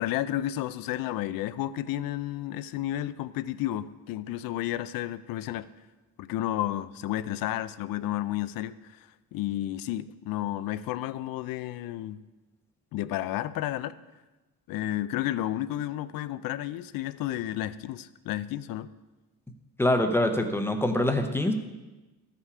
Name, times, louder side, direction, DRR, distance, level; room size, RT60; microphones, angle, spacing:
voice 1, 0.0-5.7 6.2-12.2 12.9-14.0 14.7-18.9, left 13 dB, 65° left, 0.5 m, -32 dB
voice 2, 19.8-21.5, left 1 dB, 5° left, 0.7 m, -24 dB
13.0 x 5.7 x 4.8 m
cardioid pair, 140°, 37 cm